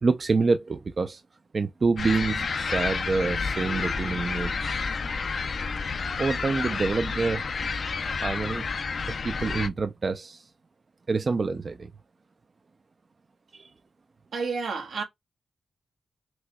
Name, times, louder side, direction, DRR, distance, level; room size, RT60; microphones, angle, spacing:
voice 1, 0.0-1.2 1.5-4.8 6.2-7.4 8.2-8.7 9.2-10.5 11.1-11.9 13.5-13.7, right 4 dB, 45° right, 0.5 m, -27 dB
sound 1, 2.0-9.7, left 5 dB, 60° left, 0.6 m, -30 dB
voice 2, 14.3-15.0, right 4 dB, 85° right, 1.6 m, -30 dB
6.2 x 3.0 x 2.2 m
wide cardioid pair, 105°, 0 cm